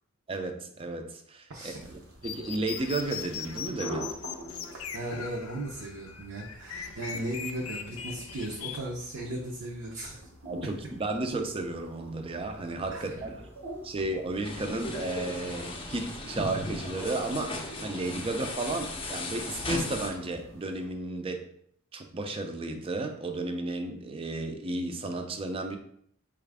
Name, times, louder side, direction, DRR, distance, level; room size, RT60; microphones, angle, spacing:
voice 1, 0.3-4.1 10.5-13.4 13.8-21.5 21.9-25.8, right 2 dB, 25° right, 5 dB, 0.4 m, -33 dB
sound 1, 1.6-21.0, equal, 85° right, 1.0 m, -47 dB
sound 2, 2.2-8.8, left 8 dB, 85° left, 0.4 m, -40 dB
voice 2, 4.7-10.3 12.9-13.1, right 1 dB, 65° right, -3 dB, 0.6 m, -37 dB
sound 3, 14.4-20.1, left 2 dB, 25° left, 0.5 m, -36 dB
4.2 x 2.4 x 3.3 m, 0.66 s
head